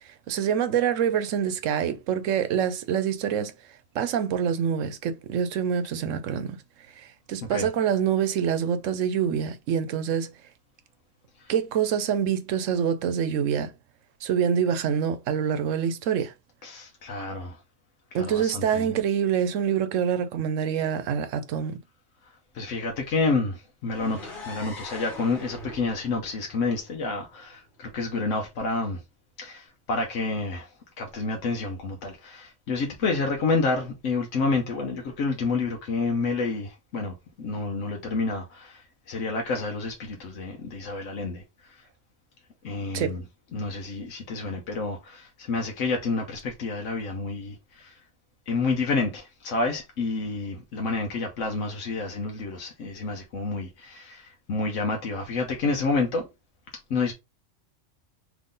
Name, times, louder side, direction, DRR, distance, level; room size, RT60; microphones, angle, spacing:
voice 1, 0.3-3.5 3.9-6.6 7.0-10.3 11.5-13.7 14.2-16.3 18.1-21.8 42.9-43.2, right 8 dB, 90° right, 1.0 m, -26 dB
voice 2, 16.6-17.6 18.1-18.9 22.5-29.0 29.4-41.9 42.6-43.2 43.5-48.0 48.5-56.3 56.9-57.1, left 3 dB, 90° left, 1.2 m, -29 dB
sound 1, 23.9-27.7, left 2 dB, 40° left, 1.9 m, -43 dB
3.7 x 3.2 x 3.8 m
omnidirectional pair, 1.3 m